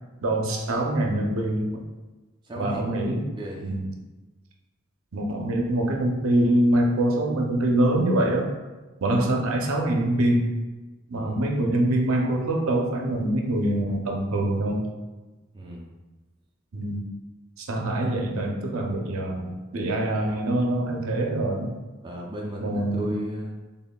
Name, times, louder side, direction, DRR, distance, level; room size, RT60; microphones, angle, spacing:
voice 1, 0.2-1.8 2.6-3.2 3.6-3.9 5.1-8.5 9.0-10.4 11.1-14.8 16.7-17.0 17.6-21.8 22.6-23.1, right 1 dB, 75° right, 1 dB, 0.6 m, -24 dB
voice 2, 2.4-2.9 3.4-3.8 11.1-11.4 15.5-15.9 22.0-23.5, right 1 dB, 20° right, -3 dB, 0.5 m, -35 dB
4.1 x 3.5 x 2.2 m, 1.2 s
head